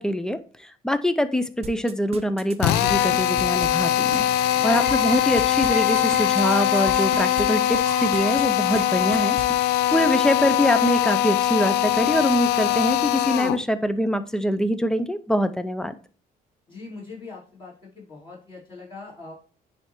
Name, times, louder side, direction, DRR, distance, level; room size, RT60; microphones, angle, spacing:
voice 1, 0.0-9.4 9.9-16.0, equal, 5° left, 12 dB, 0.5 m, -24 dB
sound 1, 1.6-7.4 7.7-8.5 8.7-8.8 9.1-9.6, right 6 dB, 35° right, 0.7 m, -36 dB
Drill, 2.6-13.6, left 12 dB, 85° left, 0.4 m, -22 dB
sound 2, 4.8-10.3, equal, 45° left, 2.0 m, -35 dB
voice 2, 16.7-19.3, left 3 dB, 30° left, -5 dB, 2.8 m, -42 dB
9.7 x 3.4 x 3.0 m, 0.40 s
cardioid pair, 110°, 17 cm